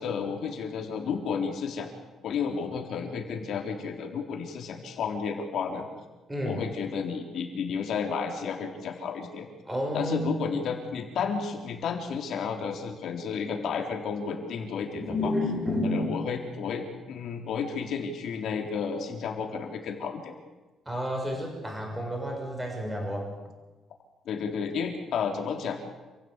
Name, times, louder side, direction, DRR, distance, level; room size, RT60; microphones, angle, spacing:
voice 1, 0.0-1.9 2.2-5.9 6.4-9.5 9.9-15.3 15.8-20.3 24.3-25.8, left 6 dB, 60° left, 2 dB, 4.0 m, -32 dB
voice 2, 6.3-6.7 9.7-10.5 15.0-16.2 20.9-23.3, left 1 dB, 10° right, 1 dB, 6.1 m, -30 dB
28.0 x 16.0 x 8.4 m, 1.2 s
cardioid pair, 150°, 0 cm